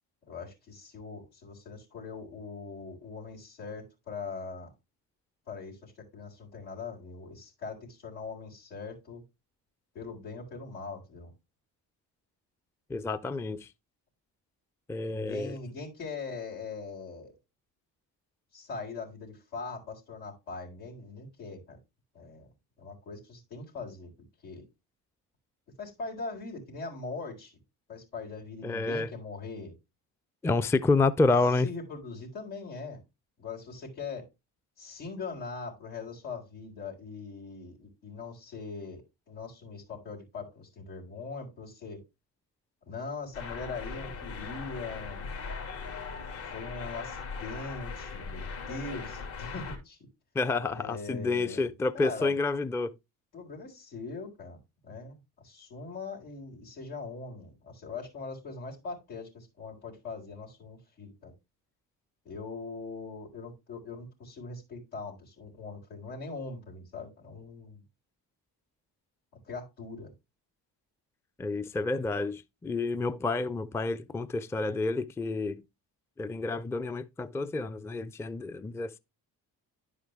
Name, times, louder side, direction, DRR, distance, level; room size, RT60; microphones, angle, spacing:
voice 1, 0.3-4.7 5.5-9.2 9.9-11.3 15.1-17.3 18.5-21.8 22.1-22.5 22.8-24.1 24.4-24.6 25.8-27.6 27.9-29.7 31.6-33.0 33.4-34.3 34.8-39.0 39.3-42.0 42.9-45.2 46.5-50.0 50.7-52.3 53.3-61.3 62.2-67.8 69.4-70.1, left 4 dB, 90° left, 4.0 m, -41 dB
voice 2, 12.9-13.7 14.9-15.6 28.6-29.1 30.4-31.7 50.3-53.0 71.4-75.6 76.2-79.0, left 3 dB, 5° left, 0.4 m, -29 dB
sound 1, 43.3-49.8, left 5 dB, 70° left, 2.8 m, -39 dB
10.5 x 5.0 x 3.5 m
hypercardioid pair, 55°, 49 cm